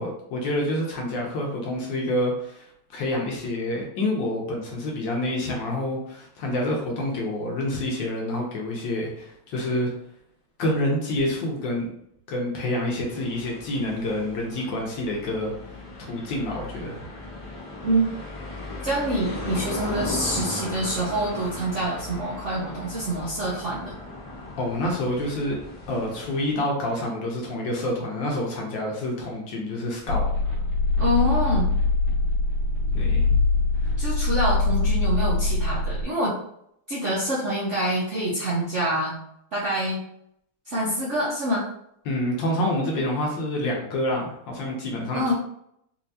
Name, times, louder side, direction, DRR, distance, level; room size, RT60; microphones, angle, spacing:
voice 1, 0.0-2.7 2.9-9.9 10.6-11.9 12.3-15.5 16.1-17.0 24.6-25.6 25.9-30.6 32.9-33.4 33.8-33.9 42.0-45.3, left 1 dB, 65° left, -1 dB, 1.4 m, -27 dB
sound 1, 13.1-26.5, left 2 dB, 35° left, 0.4 m, -37 dB
voice 2, 18.8-23.9 31.0-31.7 34.0-36.3 36.9-39.2 39.5-40.0 40.7-41.6 45.1-45.3, right 1 dB, 70° right, -7 dB, 0.7 m, -26 dB
sound 2, 30.1-36.0, left 3 dB, 50° right, 1.6 m, -23 dB
4.4 x 2.7 x 2.7 m, 0.74 s
omnidirectional pair, 2.4 m